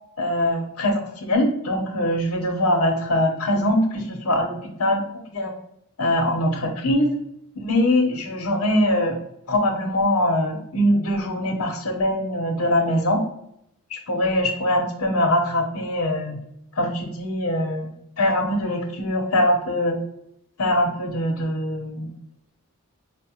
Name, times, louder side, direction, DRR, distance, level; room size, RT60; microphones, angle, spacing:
voice 1, 0.2-5.0 5.3-5.5 6.0-7.1 7.6-9.2 9.5-13.2 13.9-16.4 16.8-17.9 18.2-20.0 20.6-22.1, left 1 dB, 90° left, 2 dB, 0.8 m, -22 dB
5.0 x 2.1 x 2.8 m, 0.76 s
head